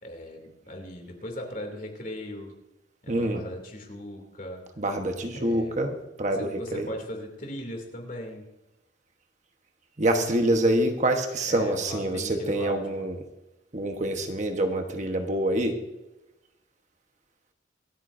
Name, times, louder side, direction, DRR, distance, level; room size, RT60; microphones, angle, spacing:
voice 1, 0.0-2.6 3.0-4.7 5.3-6.0 6.3-8.5 11.5-13.1, left 1 dB, 45° left, 3 dB, 2.7 m, -38 dB
voice 2, 3.1-3.4 4.8-6.9 10.0-13.1 13.7-15.8, right 1 dB, 40° right, 5 dB, 1.2 m, -26 dB
25.5 x 9.2 x 2.7 m, 0.97 s
head